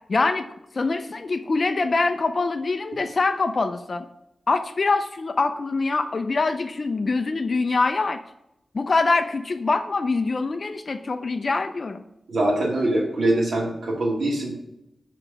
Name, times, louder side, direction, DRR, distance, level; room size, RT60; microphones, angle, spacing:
voice 1, 0.1-0.5 0.7-4.1 4.5-8.2 8.7-12.0, left 3 dB, 45° left, 7 dB, 0.4 m, -24 dB
voice 2, 12.3-14.5, right 1 dB, 65° right, -2 dB, 2.0 m, -23 dB
5.8 x 4.5 x 5.0 m, 0.85 s
wide cardioid pair, 125°, 0 cm